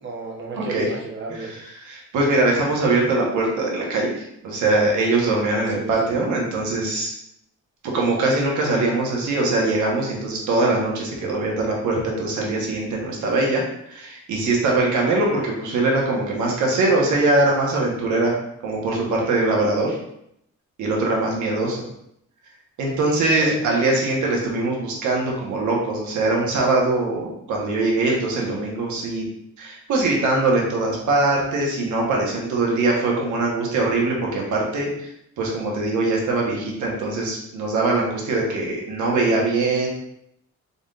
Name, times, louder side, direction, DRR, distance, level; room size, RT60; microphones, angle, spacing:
voice 1, 0.0-1.5 5.6-6.1 23.4-23.6, right 3 dB, 40° right, -1 dB, 1.0 m, -32 dB
voice 2, 0.5-0.9 1.4-1.5 1.8-7.1 7.8-18.4 18.6-20.0 20.8-21.8 22.8-29.2 29.6-35.1 35.4-39.9, right 2 dB, 75° right, -1 dB, 1.2 m, -22 dB
4.0 x 3.5 x 2.5 m, 0.75 s
cardioid pair, 90°, 30 cm